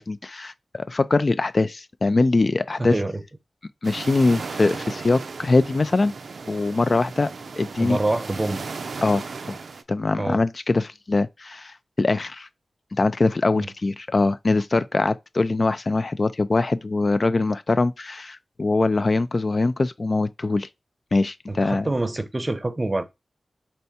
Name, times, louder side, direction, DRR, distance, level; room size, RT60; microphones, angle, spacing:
voice 1, 0.0-3.0 3.8-6.1 6.5-7.3 7.6-8.0 9.0-9.6 9.9-12.5 12.9-20.7 21.1-21.9, left 3 dB, 50° left, 0.3 m, -22 dB
voice 2, 2.8-3.2 7.8-8.6 10.2-10.4 13.5-13.7 21.5-23.0, right 2 dB, 30° right, 0.6 m, -26 dB
sound 1, 3.8-9.8, right 4 dB, 80° right, 0.4 m, -36 dB
4.3 x 3.4 x 2.7 m
cardioid pair, 45°, 0 cm